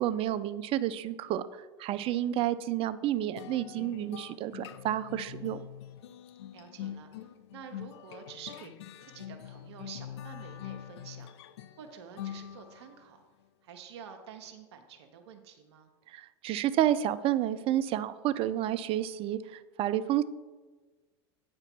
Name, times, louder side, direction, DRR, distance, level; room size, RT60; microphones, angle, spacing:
voice 1, 0.0-5.6 16.1-20.2, right 12 dB, 40° right, 14 dB, 0.5 m, -30 dB
sound 1, 3.4-13.0, left 11 dB, 80° left, 0.5 m, -44 dB
voice 2, 6.5-8.7 9.0-11.3 11.8-13.2 13.6-15.9, right 7 dB, 75° right, 4 dB, 1.0 m, -49 dB
8.9 x 4.4 x 6.0 m, 1.3 s
hypercardioid pair, 100°, 14 cm